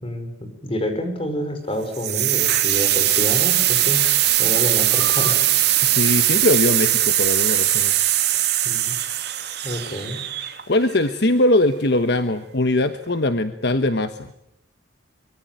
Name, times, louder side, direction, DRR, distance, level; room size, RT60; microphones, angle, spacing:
voice 1, 0.0-4.0 4.4-5.4 8.6-9.0 9.6-10.2, equal, 30° left, 7 dB, 4.9 m, -28 dB
sound 1, 1.9-10.8, right 13 dB, 55° right, 2.8 m, -20 dB
voice 2, 5.8-7.9 10.7-14.3, left 1 dB, 60° left, 9 dB, 1.2 m, -21 dB
24.0 x 23.0 x 9.1 m, 0.78 s
head